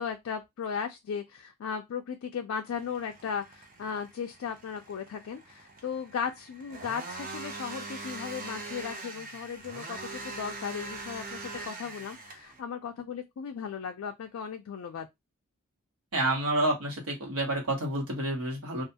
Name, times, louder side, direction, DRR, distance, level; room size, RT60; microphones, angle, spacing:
voice 1, 0.0-15.1, left 7 dB, 75° left, 0.3 m, -36 dB
sound 1, 2.7-12.6, right 3 dB, 40° right, 0.5 m, -42 dB
voice 2, 16.1-18.8, right 1 dB, 85° right, 1.1 m, -29 dB
2.4 x 2.2 x 2.7 m
head